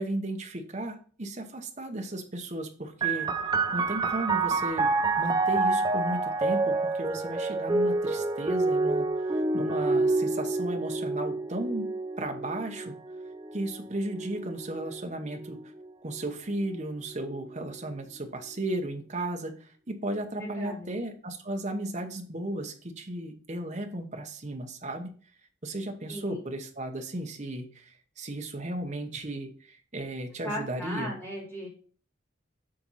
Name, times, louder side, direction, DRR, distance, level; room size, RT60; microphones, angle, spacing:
voice 1, 0.0-12.9 13.5-15.6 16.0-25.1 25.6-31.1, right 1 dB, 40° right, 4 dB, 1.0 m, -35 dB
sound 1, 3.0-16.2 17.1-17.9, right 3 dB, 20° right, 0.5 m, -28 dB
voice 2, 20.4-20.9 26.1-26.4 30.4-31.7, equal, 15° left, -4 dB, 3.0 m, -37 dB
7.7 x 4.3 x 4.1 m, 0.43 s
head